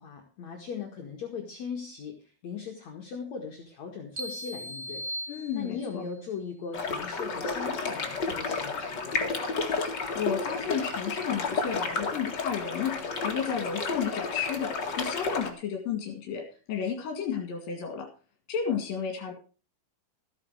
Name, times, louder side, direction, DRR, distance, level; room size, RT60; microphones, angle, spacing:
voice 1, 0.0-2.1 2.4-5.0 5.5-9.4, left 6 dB, 55° left, 2 dB, 2.8 m, -39 dB
sound 1, 4.2-6.1, equal, 50° right, 0.7 m, -38 dB
voice 2, 5.3-6.0 9.8-18.1 18.5-19.3, left 7 dB, 70° left, 3 dB, 3.7 m, -32 dB
sound 2, 6.7-15.5, left 4 dB, 35° left, 2.0 m, -31 dB
14.5 x 9.8 x 4.7 m, 0.37 s
omnidirectional pair, 4.3 m